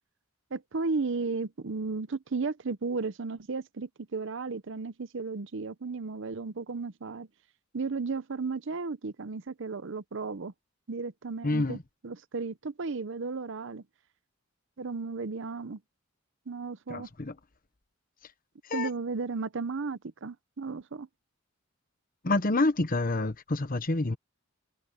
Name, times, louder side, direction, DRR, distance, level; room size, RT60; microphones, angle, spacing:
voice 1, 0.5-7.3 7.7-10.5 10.9-13.8 14.8-15.8 16.5-17.1 18.7-21.1, right 4 dB, 65° right, 0.7 m, -34 dB
voice 2, 11.4-11.8 16.9-17.3 18.7-18.9 22.2-24.2, left 2 dB, 45° left, 1.1 m, -27 dB
head